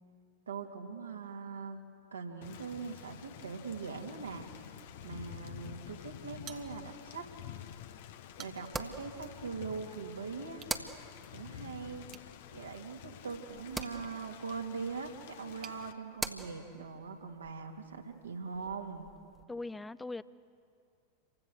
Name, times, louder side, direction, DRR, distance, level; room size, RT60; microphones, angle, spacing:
voice 1, 0.5-4.5 5.0-7.3 8.4-10.6 11.3-12.0 12.5-19.1, right 5 dB, 75° right, 2 dB, 2.9 m, -42 dB
Thunder / Rain, 2.4-15.9, left 10 dB, 55° left, 1.2 m, -49 dB
sound 1, 6.4-7.2 7.6-7.7 8.2-8.9 10.5-10.8 12.1-15.8, right 10 dB, 35° right, 1.4 m, -54 dB
sound 2, 6.6-19.4, right 3 dB, 10° right, 1.7 m, -47 dB
voice 2, 19.5-20.2, left 2 dB, 10° left, 17 dB, 0.7 m, -40 dB
28.5 x 24.0 x 6.5 m, 2.3 s
figure-of-eight pair, 90°, 0 cm